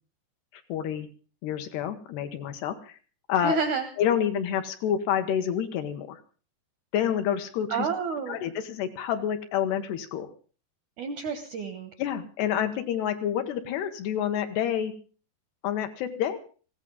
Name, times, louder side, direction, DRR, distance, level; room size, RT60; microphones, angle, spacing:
voice 1, 0.5-1.1 1.4-3.0 3.3-3.6 4.0-6.2 6.9-7.9 8.3-10.3 12.0-14.9 15.6-16.4, left 9 dB, 80° left, 7 dB, 3.2 m, -28 dB
voice 2, 3.4-3.9 7.7-8.4 11.0-11.9, right 5 dB, 75° right, 7 dB, 1.8 m, -29 dB
19.0 x 16.0 x 3.8 m, 0.37 s
omnidirectional pair, 4.9 m